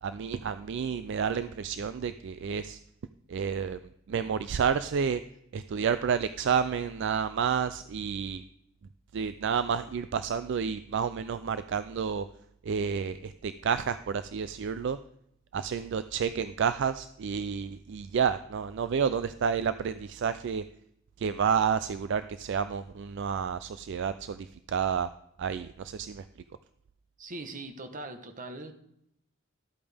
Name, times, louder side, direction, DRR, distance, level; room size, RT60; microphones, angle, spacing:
voice 1, 0.0-2.8 3.3-3.8 4.1-5.2 5.5-8.4 9.1-12.3 12.6-15.0 15.5-20.6 21.2-25.1 25.4-26.2, right 6 dB, 60° right, 12 dB, 0.4 m, -30 dB
voice 2, 27.2-28.7, right 2 dB, 40° right, 7 dB, 1.1 m, -41 dB
13.0 x 8.6 x 3.5 m, 0.75 s
head